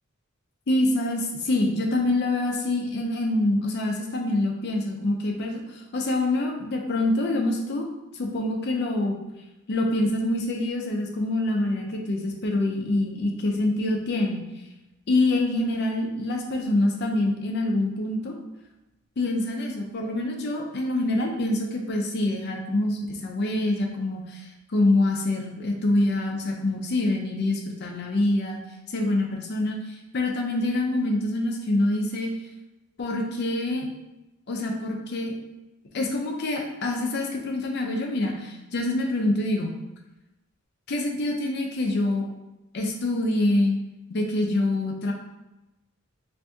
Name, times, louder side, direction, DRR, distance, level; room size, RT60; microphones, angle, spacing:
voice 1, 0.7-5.6 5.9-7.9 8.2-9.2 9.7-14.4 15.1-18.3 19.2-24.4 24.7-28.6 28.9-29.8 30.1-32.3 33.0-33.9 34.5-35.3 35.9-39.7 40.9-42.3 42.7-43.8 44.1-45.1, left 2 dB, 55° left, 2 dB, 0.5 m, -25 dB
3.4 x 2.6 x 2.6 m, 1.0 s
head